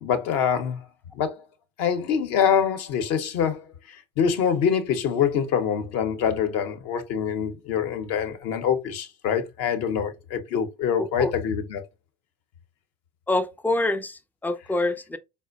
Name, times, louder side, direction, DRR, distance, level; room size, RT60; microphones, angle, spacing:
voice 1, 0.0-0.9 1.1-1.4 1.8-11.8, left 7 dB, 55° left, 0.8 m, -25 dB
voice 2, 11.0-11.3 13.3-15.2, left 2 dB, 5° left, 0.4 m, -26 dB
4.3 x 2.0 x 2.4 m
hypercardioid pair, 70°, 29 cm